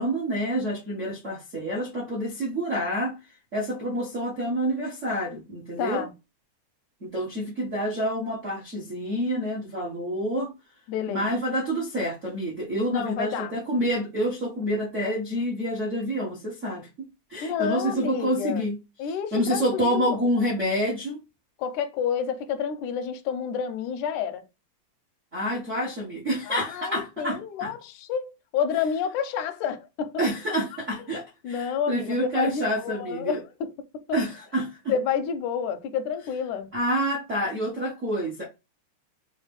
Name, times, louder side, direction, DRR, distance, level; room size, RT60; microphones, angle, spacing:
voice 1, 0.0-3.1 3.5-6.0 7.0-10.5 11.1-16.9 17.3-18.7 19.3-21.2 25.3-27.7 30.2-33.4 34.1-34.9 36.7-38.4, equal, 55° right, 0.8 m, -28 dB
voice 2, 5.8-6.1 10.9-11.2 12.9-13.5 17.4-18.6 19.0-20.3 21.6-24.4 26.5-28.3 28.5-30.2 31.1-31.2 31.4-34.0 34.9-36.7, left 7 dB, 85° left, 2.1 m, -29 dB
4.8 x 2.8 x 3.5 m
omnidirectional pair, 3.5 m